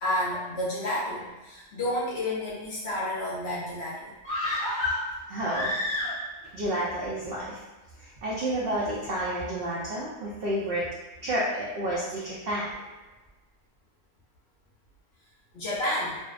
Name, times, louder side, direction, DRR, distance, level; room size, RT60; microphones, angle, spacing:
voice 1, 0.0-4.1 15.5-16.2, left 1 dB, 60° left, -7 dB, 0.7 m, -30 dB
sound 1, 4.2-6.5 6.8-6.9, left 1 dB, 10° left, 0.5 m, -29 dB
voice 2, 5.3-5.7 6.5-7.6 8.0-10.9 11.2-12.8, right 1 dB, 90° right, -6 dB, 0.5 m, -30 dB
2.5 x 2.1 x 2.3 m, 1.2 s
omnidirectional pair, 1.6 m